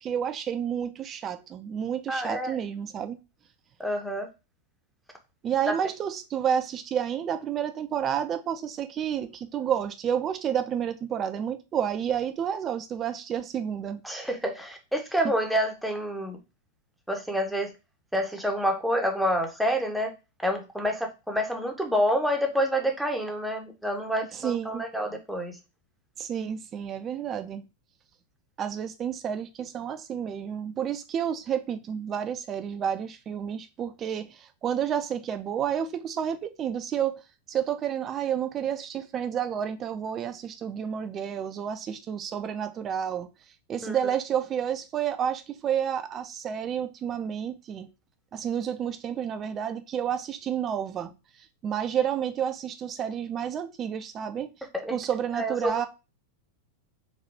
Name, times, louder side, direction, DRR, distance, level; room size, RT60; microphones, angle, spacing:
voice 1, 0.0-3.2 5.4-14.0 24.3-24.8 26.2-27.6 28.6-37.2 37.5-43.3 43.7-47.9 48.3-51.1 51.6-54.5 54.9-55.9, right 8 dB, 30° right, 0.5 m, -30 dB
voice 2, 2.1-2.6 3.8-4.3 14.0-16.4 17.1-17.7 18.1-20.1 20.4-25.6 43.8-44.0 54.7-54.9 55.3-55.9, equal, ahead, 0.9 m, -28 dB
3.9 x 2.7 x 3.3 m
figure-of-eight pair, 90°, 0 cm